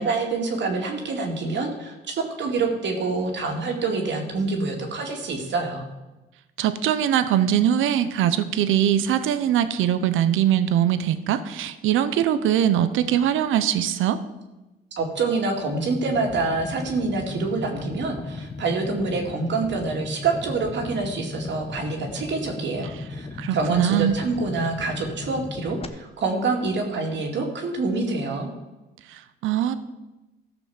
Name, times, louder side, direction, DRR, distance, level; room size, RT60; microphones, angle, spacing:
voice 1, 0.0-5.9 15.0-28.5, right 3 dB, 65° right, 2 dB, 2.4 m, -26 dB
voice 2, 6.6-14.2 23.4-24.1 29.1-29.7, right 10 dB, 85° right, 12 dB, 0.8 m, -22 dB
sound 1, 15.9-25.9, left 3 dB, 30° left, 1.0 m, -36 dB
13.5 x 6.1 x 7.1 m, 1.0 s
cardioid pair, 90°, 20 cm